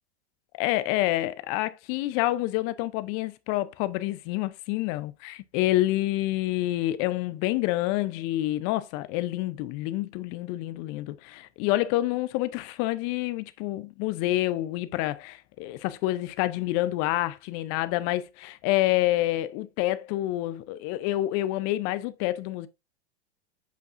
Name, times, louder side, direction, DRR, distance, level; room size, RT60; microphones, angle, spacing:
voice 1, 0.6-18.2 18.6-22.7, left 16 dB, 45° left, 0.5 m, -28 dB
8.1 x 4.7 x 2.5 m
hypercardioid pair, 100°, 34 cm